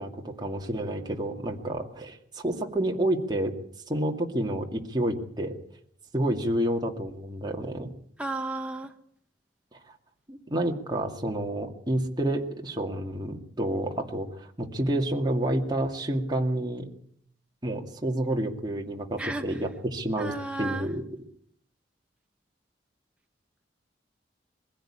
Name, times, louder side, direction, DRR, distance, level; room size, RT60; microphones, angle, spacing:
voice 1, 0.0-3.5 3.9-5.6 6.1-7.9 10.3-16.9 17.6-21.0, right 1 dB, 25° right, 2 dB, 2.2 m, -29 dB
voice 2, 8.2-8.9 19.2-19.6 20.2-20.9, right 2 dB, 5° right, 4 dB, 1.1 m, -33 dB
21.5 x 16.0 x 8.7 m, 0.66 s
head